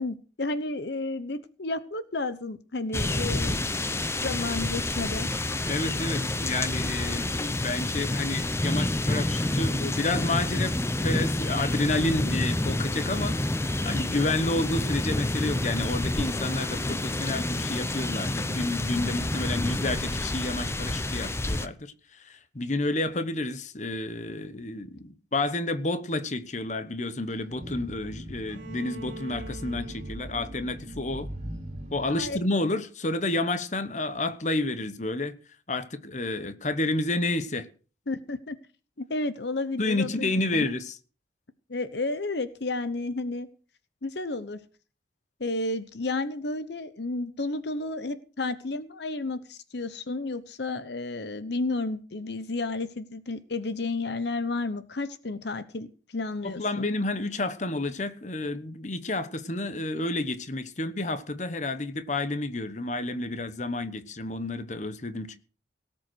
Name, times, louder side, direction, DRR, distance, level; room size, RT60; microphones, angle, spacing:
voice 1, 0.0-3.8 4.2-5.3 32.1-32.4 38.1-38.6 39.0-40.6 41.7-43.5 44.0-44.6 45.4-56.9, left 2 dB, 65° left, 0.9 m, -32 dB
sound 1, 2.9-21.7, left 1 dB, 15° left, 0.7 m, -28 dB
voice 2, 5.6-10.7 11.0-31.3 31.9-35.3 35.7-37.7 39.8-41.0 56.4-65.4, left 2 dB, 40° left, 1.0 m, -30 dB
sound 2, 27.3-32.4, equal, 35° right, 2.6 m, -40 dB
Bowed string instrument, 28.5-32.3, right 2 dB, 85° right, 2.2 m, -45 dB
18.0 x 7.7 x 6.2 m
head